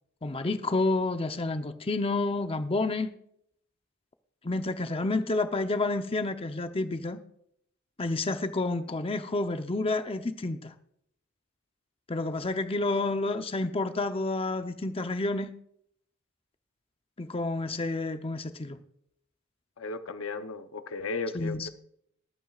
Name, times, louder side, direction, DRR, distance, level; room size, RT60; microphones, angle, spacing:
voice 1, 0.2-3.1 4.4-7.2 8.0-10.7 12.1-15.5 17.2-18.8 21.3-21.7, left 2 dB, 25° left, 8 dB, 0.7 m, -29 dB
voice 2, 19.8-21.7, left 4 dB, 75° left, 10 dB, 0.8 m, -35 dB
23.0 x 9.0 x 2.4 m, 0.69 s
head